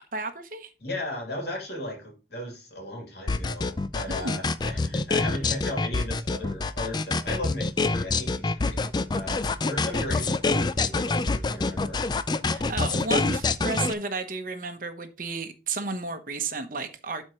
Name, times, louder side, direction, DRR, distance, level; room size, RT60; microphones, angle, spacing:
voice 1, 0.1-0.7 4.1-4.4 9.3-9.6 12.4-17.2, right 3 dB, 50° right, 8 dB, 1.0 m, -33 dB
voice 2, 0.8-8.9 9.1-12.0, left 1 dB, 65° left, 0 dB, 3.0 m, -36 dB
sound 1, 3.3-13.9, left 3 dB, 25° left, 0.4 m, -26 dB
12.0 x 4.5 x 3.0 m, 0.30 s
head